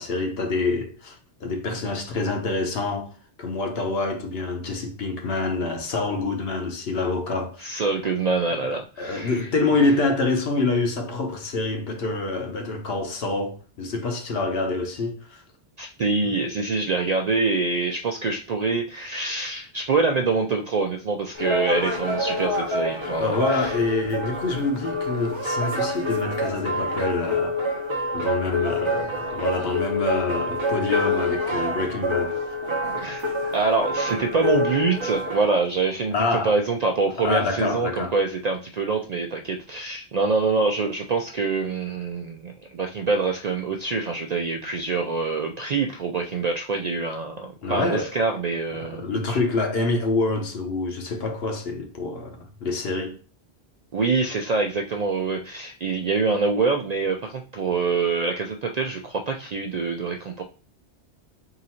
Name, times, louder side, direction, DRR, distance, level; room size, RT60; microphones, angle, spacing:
voice 1, 0.0-3.1 3.4-7.8 8.7-15.4 23.2-27.6 28.1-32.6 36.1-36.6 37.2-38.1 47.6-48.1 48.8-53.2, left 3 dB, 65° left, 1.0 m, -26 dB
voice 2, 7.6-9.5 15.8-23.8 33.0-49.4 53.9-60.4, right 4 dB, 60° right, 0.4 m, -25 dB
sound 1, 21.3-35.5, left 1 dB, 30° right, 0.7 m, -27 dB
3.8 x 2.5 x 4.2 m
omnidirectional pair, 1.1 m